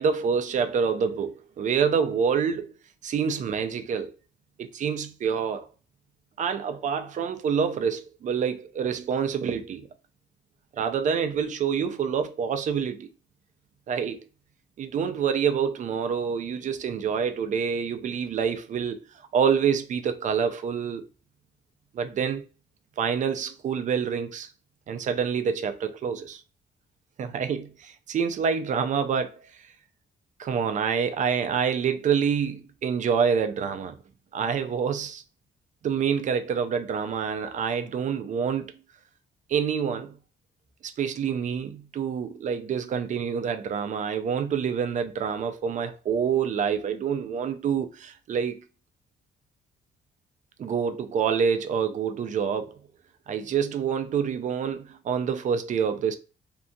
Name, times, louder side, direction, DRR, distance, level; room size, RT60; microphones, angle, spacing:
voice 1, 0.0-2.7 3.0-4.1 4.6-5.7 6.4-9.9 10.8-13.1 13.9-14.2 14.8-19.0 19.3-21.1 21.9-22.4 23.0-24.5 24.9-26.4 27.2-29.7 30.4-34.0 34.3-35.2 35.8-38.7 39.5-40.2 40.8-48.6 50.6-52.8 53.3-56.2, right 7 dB, 45° right, 0.4 m, -27 dB
2.6 x 2.3 x 2.6 m
cardioid pair, 140°, 17 cm